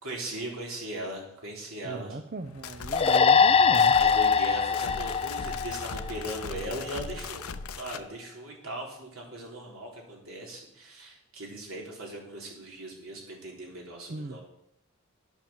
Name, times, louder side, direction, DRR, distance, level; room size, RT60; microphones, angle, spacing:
voice 1, 0.0-2.2 4.0-7.5 7.8-14.4, right 1 dB, 75° right, -2 dB, 3.9 m, -39 dB
voice 2, 1.8-4.0 14.1-14.4, right 3 dB, 40° right, 7 dB, 0.6 m, -37 dB
sound 1, 2.4-8.1, left 5 dB, 85° left, 0.7 m, -39 dB
sound 2, 2.9-6.4, left 6 dB, 25° left, 0.4 m, -22 dB
10.5 x 7.5 x 7.2 m, 0.77 s
head